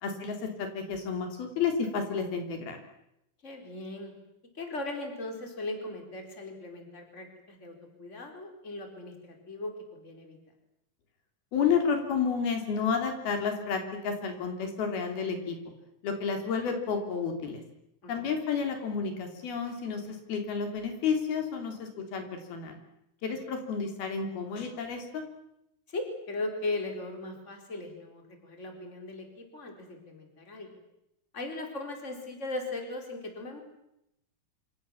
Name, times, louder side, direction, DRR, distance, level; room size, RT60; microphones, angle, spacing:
voice 1, 0.0-2.8 11.5-15.6 16.0-17.6 18.1-22.8 23.2-25.3, left 6 dB, 80° left, 5 dB, 5.3 m, -31 dB
voice 2, 3.4-4.1 4.5-10.4 18.0-18.1 23.3-23.4 25.9-30.7 31.3-33.6, left 2 dB, 20° left, 4 dB, 4.5 m, -38 dB
27.0 x 26.5 x 7.3 m, 0.82 s
omnidirectional pair, 4.3 m